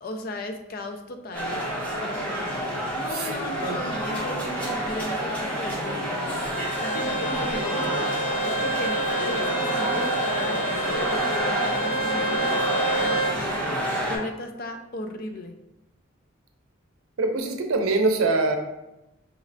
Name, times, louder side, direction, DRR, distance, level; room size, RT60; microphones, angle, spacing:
voice 1, 0.0-1.7 2.9-15.6, left 1 dB, 45° left, 5 dB, 0.4 m, -36 dB
sound 1, 1.3-14.2, equal, 5° left, 0.7 m, -28 dB
voice 2, 3.1-3.8 17.2-18.5, right 3 dB, 90° right, 5 dB, 0.5 m, -24 dB
Bowed string instrument, 6.4-13.4, right 2 dB, 70° left, 0.8 m, -28 dB
4.9 x 3.1 x 2.6 m, 0.94 s
head